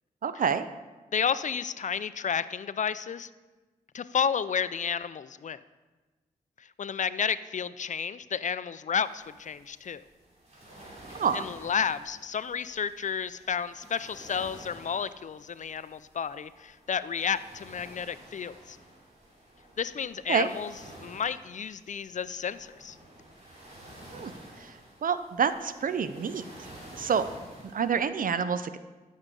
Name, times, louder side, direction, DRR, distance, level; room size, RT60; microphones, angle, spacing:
voice 1, 0.2-0.7 11.1-11.4 20.3-20.5 24.1-24.7 25.0-26.5 26.9-27.3 27.7-28.8, right 6 dB, 65° right, 12 dB, 0.5 m, -28 dB
voice 2, 1.1-3.3 3.9-5.6 6.6-10.0 11.3-18.8 19.8-20.7 21.0-23.0, left 7 dB, 55° left, 15 dB, 0.4 m, -31 dB
sound 1, 9.0-28.1, right 1 dB, 45° right, 3.4 m, -51 dB
13.5 x 6.4 x 3.8 m, 1.2 s
cardioid pair, 60°, 16 cm